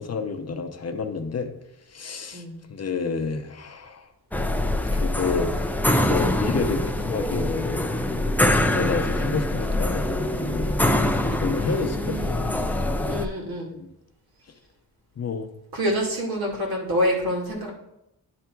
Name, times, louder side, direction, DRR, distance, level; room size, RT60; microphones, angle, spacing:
voice 1, 0.0-1.5 1.9-2.4 2.7-4.1 4.9-5.7 6.0-7.8 8.7-10.7 11.2-12.4 13.7-13.9 15.2-15.5, left 4 dB, 40° left, 7 dB, 0.8 m, -29 dB
sound 1, 4.3-13.3, left 1 dB, 5° left, 0.4 m, -24 dB
voice 2, 11.6-12.5 13.1-13.7 15.7-17.7, equal, 70° right, -1 dB, 2.2 m, -27 dB
10.5 x 3.5 x 4.5 m, 0.85 s
cardioid pair, 85°, 37 cm